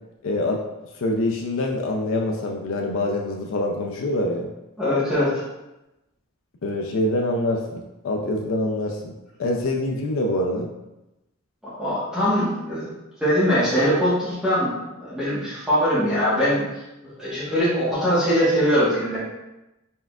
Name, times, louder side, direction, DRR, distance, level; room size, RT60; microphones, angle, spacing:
voice 1, 0.2-0.6 0.9-4.5 6.6-9.1 9.4-10.7, left 1 dB, 65° left, 1 dB, 0.4 m, -25 dB
voice 2, 4.8-5.4 11.6-12.9 13.2-16.7 17.2-19.2, equal, 5° right, -12 dB, 1.1 m, -22 dB
4.3 x 3.6 x 2.3 m, 0.97 s
head